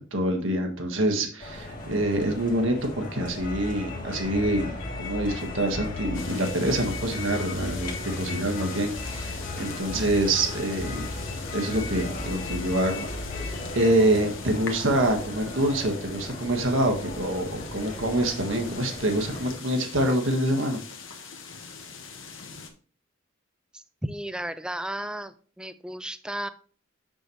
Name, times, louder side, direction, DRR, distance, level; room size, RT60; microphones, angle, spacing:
voice 1, 0.1-11.1 11.5-13.0 13.3-20.8, right 1 dB, 70° right, 4 dB, 1.5 m, -26 dB
sound 1, 1.4-19.5, left 2 dB, 40° left, 1.7 m, -35 dB
sound 2, 6.1-22.7, left 5 dB, 70° left, 1.3 m, -42 dB
voice 2, 23.7-26.5, right 1 dB, 5° right, 11 dB, 0.4 m, -34 dB
6.7 x 6.2 x 3.1 m, 0.40 s
head